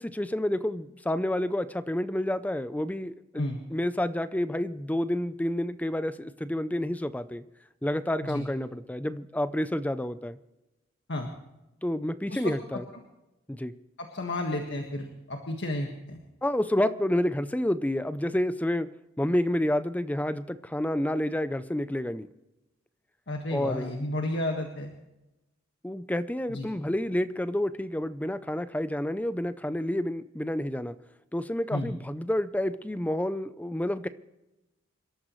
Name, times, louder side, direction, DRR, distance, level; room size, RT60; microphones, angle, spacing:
voice 1, 0.0-7.4 7.8-10.4 11.8-12.8 13.5-13.7 16.4-18.9 19.2-22.3 23.5-23.9 25.8-30.9 31.3-34.1, left 1 dB, 10° left, 12 dB, 0.5 m, -29 dB
voice 2, 14.0-16.2 23.3-24.9 26.5-26.7 31.7-31.9, left 1 dB, 60° left, 2 dB, 1.7 m, -32 dB
27.0 x 13.0 x 3.2 m, 0.97 s
head